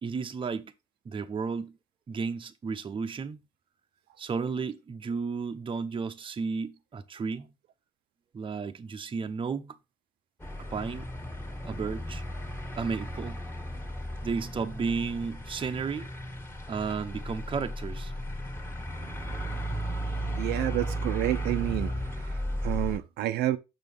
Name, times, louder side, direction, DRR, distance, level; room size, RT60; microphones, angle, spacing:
voice 1, 0.0-0.7 1.0-1.8 2.1-3.4 4.2-7.5 8.3-9.8 10.6-11.1 11.7-12.2 12.8-13.4 14.2-16.1 16.7-18.1, right 5 dB, 30° right, 0.8 m, -33 dB
sound 1, 10.4-23.0, equal, 10° left, 1.8 m, -35 dB
voice 2, 20.4-23.6, right 14 dB, 75° right, 0.7 m, -30 dB
6.5 x 6.3 x 3.4 m
cardioid pair, 110°, 17 cm